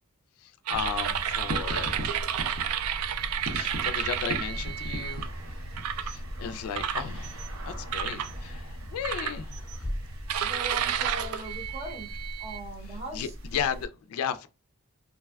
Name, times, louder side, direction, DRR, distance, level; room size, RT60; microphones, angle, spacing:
voice 1, 0.4-2.0 3.5-5.3 5.9-7.4 7.7-9.9 12.8-14.5, left 8 dB, 85° left, 0.3 m, -35 dB
sound 1, 0.7-13.9, equal, 70° right, 0.8 m, -38 dB
sound 2, 0.7-5.2 5.8-6.2 6.7-7.5 7.9-8.3 9.0-9.8 10.3-12.6, right 9 dB, 90° right, 0.3 m, -31 dB
sound 3, 8.7-12.4, equal, 10° left, 0.6 m, -44 dB
voice 2, 10.4-12.1 12.4-13.3, right 1 dB, 30° right, 0.7 m, -40 dB
3.2 x 2.6 x 2.2 m
head